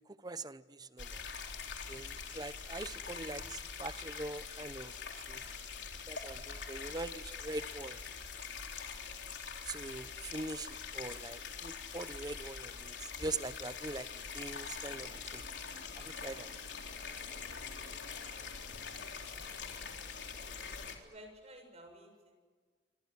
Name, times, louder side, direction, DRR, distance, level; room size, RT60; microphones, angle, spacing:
voice 1, 0.2-1.2 1.9-4.9 5.3-5.4 6.1-8.0 9.7-14.1 14.3-15.4 16.0-16.5, right 2 dB, 25° right, 14 dB, 0.9 m, -42 dB
sound 1, 1.0-21.0, left 5 dB, 85° left, 3.8 m, -44 dB
voice 2, 18.8-19.2 21.0-22.3, equal, 40° right, 5 dB, 7.1 m, -54 dB
27.5 x 26.0 x 8.2 m, 1.5 s
head